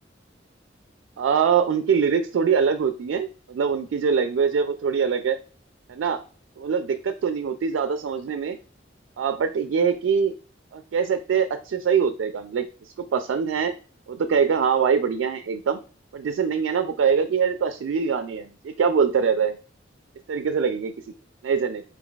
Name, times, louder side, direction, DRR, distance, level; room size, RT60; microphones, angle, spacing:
voice 1, 1.2-5.4 5.9-6.2 6.6-8.6 9.2-10.3 10.7-13.7 14.1-15.8 16.1-19.6 20.3-20.9 21.4-21.8, right 6 dB, 85° right, 9 dB, 0.3 m, -23 dB
4.5 x 2.3 x 3.8 m, 0.38 s
head